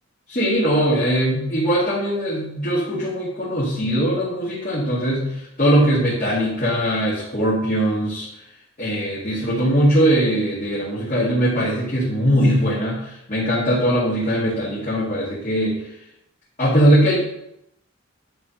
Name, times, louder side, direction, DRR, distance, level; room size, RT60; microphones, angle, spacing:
voice 1, 0.3-8.3 8.8-15.8 16.6-17.2, equal, 40° left, -8 dB, 2.2 m, -20 dB
10.0 x 3.6 x 5.7 m, 0.80 s
head